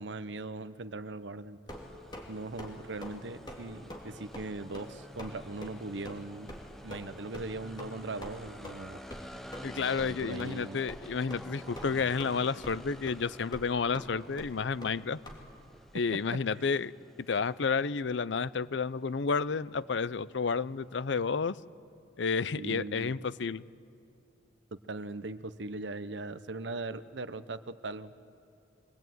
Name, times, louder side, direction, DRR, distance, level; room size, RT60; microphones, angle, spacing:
voice 1, 0.0-1.6 2.3-6.6 6.8-9.0 9.9-10.8 16.6-16.7 22.5-23.3 24.7-28.1, right 2 dB, 70° right, 13 dB, 0.8 m, -40 dB
Stomping on wood, 1.7-2.3 2.6-2.7 3.0-3.2 3.5-3.6 3.9-4.0 4.3-4.5 4.7-4.9 5.2-5.3 5.6-5.7 6.0-6.2 6.5-6.6 6.9-7.1 7.3-7.5 7.8-7.9 8.2-8.3 8.6-8.7 9.1-9.2 9.5-9.7 10.0-10.1 10.4-10.5 10.9-11.0 11.3-11.4 11.7-12.3 12.6-12.8 13.1-13.2 13.5-13.6 13.9-14.1 14.4-14.5 14.8-14.9 15.2-15.4, equal, 25° left, 3.1 m, -43 dB
sound 1, 1.7-21.6, equal, ahead, 0.8 m, -51 dB
voice 2, 9.6-15.2 15.9-16.9 17.3-21.6 22.2-23.7, left 5 dB, 75° left, 18 dB, 0.6 m, -31 dB
24.0 x 19.0 x 9.3 m, 2.7 s
head